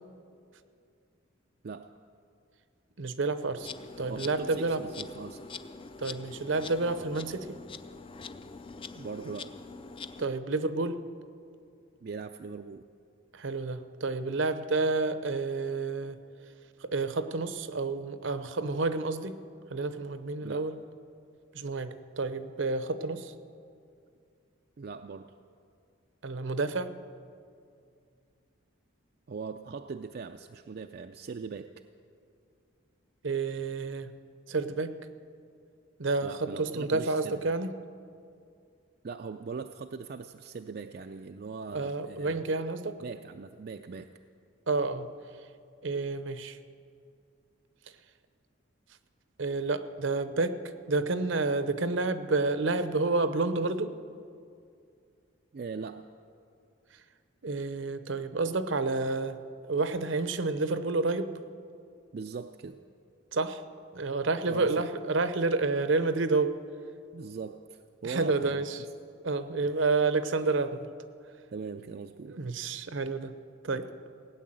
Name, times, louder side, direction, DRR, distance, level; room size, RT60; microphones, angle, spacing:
voice 1, 3.0-3.7 4.0-4.8 6.0-7.6 10.2-11.0 13.3-16.2 16.8-19.4 19.7-20.7 21.5-23.3 26.2-26.9 33.2-34.1 34.5-34.9 36.0-37.7 41.7-43.0 44.7-45.1 45.8-46.6 49.4-50.6 50.9-53.9 57.4-59.4 59.7-61.3 63.3-63.6 63.9-66.5 68.0-68.8 69.2-70.9 72.3-73.3 73.6-73.9, right 3 dB, 70° right, 12 dB, 0.7 m, -29 dB
Insect, 3.6-10.3, left 4 dB, 25° left, 0.4 m, -44 dB
voice 2, 4.1-5.4 8.9-9.6 12.0-12.9 20.4-20.7 24.8-25.3 29.3-31.7 36.2-37.5 39.0-42.5 43.0-44.1 55.5-56.1 62.1-62.8 64.5-64.8 67.1-68.6 69.7-69.8 71.5-72.4, right 5 dB, 50° right, 6 dB, 0.4 m, -40 dB
17.5 x 9.3 x 7.6 m, 2.4 s
head